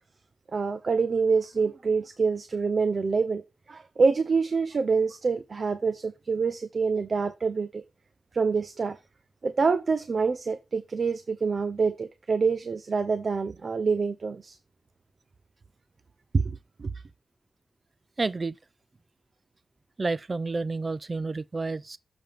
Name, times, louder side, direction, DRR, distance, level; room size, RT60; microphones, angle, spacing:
voice 1, 0.5-7.8 8.3-9.0 9.4-14.6 16.3-16.9, right 4 dB, 55° right, 0.7 m, -26 dB
voice 2, 18.2-18.6 20.0-22.0, right 3 dB, 40° right, 0.4 m, -30 dB
7.2 x 5.5 x 3.4 m
cardioid pair, 70°, 0 cm